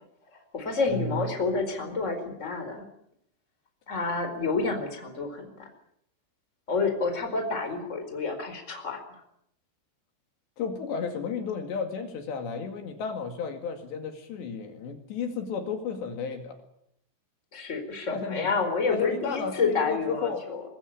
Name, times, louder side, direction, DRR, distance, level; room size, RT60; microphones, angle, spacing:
voice 1, 0.3-2.9 3.9-5.7 6.7-9.2 17.5-20.6, left 4 dB, 15° left, 5 dB, 4.3 m, -29 dB
voice 2, 0.9-1.3 10.6-16.6 18.1-18.5 18.9-20.4, left 5 dB, 70° left, 5 dB, 4.4 m, -33 dB
24.5 x 20.0 x 8.8 m, 0.73 s
omnidirectional pair, 5.4 m